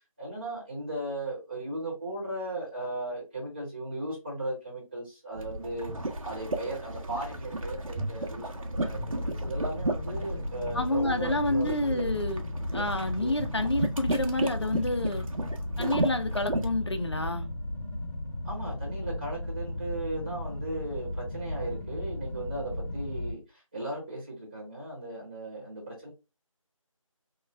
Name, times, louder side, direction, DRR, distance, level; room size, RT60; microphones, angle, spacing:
voice 1, 0.2-5.9 6.2-12.1 18.4-26.1, right 2 dB, 15° right, 1.0 m, -37 dB
sound 1, 5.3-16.7, right 2 dB, 75° right, 0.8 m, -34 dB
sound 2, 8.7-23.3, left 1 dB, 25° left, 1.4 m, -35 dB
voice 2, 10.7-12.4 12.7-15.3 15.8-17.5, left 2 dB, 50° left, 0.6 m, -29 dB
3.1 x 2.0 x 3.2 m
figure-of-eight pair, 175°, 18 cm